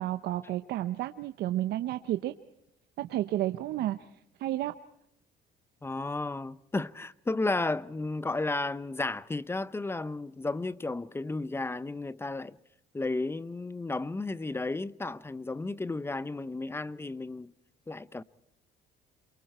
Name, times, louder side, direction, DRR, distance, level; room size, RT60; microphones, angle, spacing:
voice 1, 0.0-2.3 3.0-4.0 4.4-4.7, right 14 dB, 75° right, 0.9 m, -31 dB
voice 2, 5.8-12.6 12.9-17.5 17.9-18.2, left 2 dB, 15° left, 0.7 m, -33 dB
28.0 x 23.5 x 4.4 m
cardioid pair, 110°, 17 cm